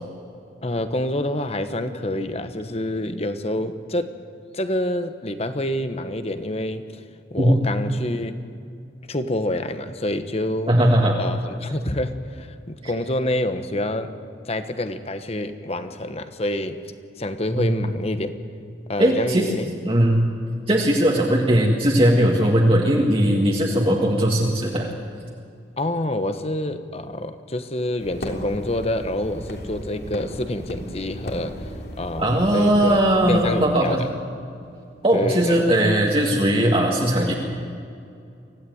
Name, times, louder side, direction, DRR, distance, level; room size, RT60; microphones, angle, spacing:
voice 1, 0.6-4.2 4.5-7.0 7.3-8.4 9.1-10.7 11.2-14.2 14.5-16.8 17.2-18.3 18.9-19.7 22.2-22.6 25.8-31.6 32.0-33.0 33.3-34.1 35.1-35.6, left 1 dB, 35° left, 9 dB, 1.2 m, -27 dB
voice 2, 10.7-11.2 17.6-17.8 19.0-19.5 19.8-20.3 20.7-24.9 32.2-34.0 35.0-37.3, right 1 dB, 30° right, -2 dB, 2.0 m, -19 dB
sound 1, 28.0-33.7, equal, 60° left, 3.4 m, -35 dB
24.5 x 16.5 x 9.4 m, 2.5 s
head